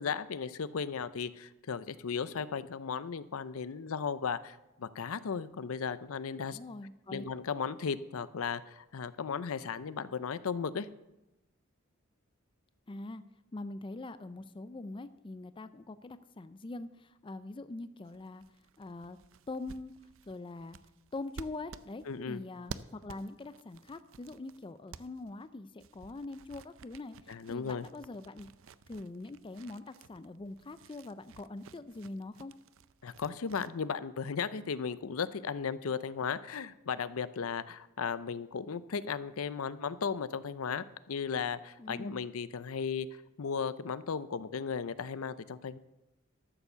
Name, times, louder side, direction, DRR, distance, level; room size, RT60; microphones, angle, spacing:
voice 1, 0.0-6.6 7.1-10.9 22.1-22.4 27.3-27.9 33.0-43.1 43.4-45.8, left 6 dB, 75° left, 15 dB, 0.5 m, -36 dB
voice 2, 6.5-7.2 12.9-13.2 13.5-18.4 18.8-19.2 19.5-19.9 20.3-20.8 21.1-27.2 27.5-28.5 28.9-32.5 41.8-42.2, left 2 dB, 25° left, 12 dB, 0.4 m, -43 dB
sound 1, 18.0-25.5 25.8-33.7, right 5 dB, 65° right, 0.5 m, -52 dB
12.5 x 7.1 x 6.8 m, 0.93 s
head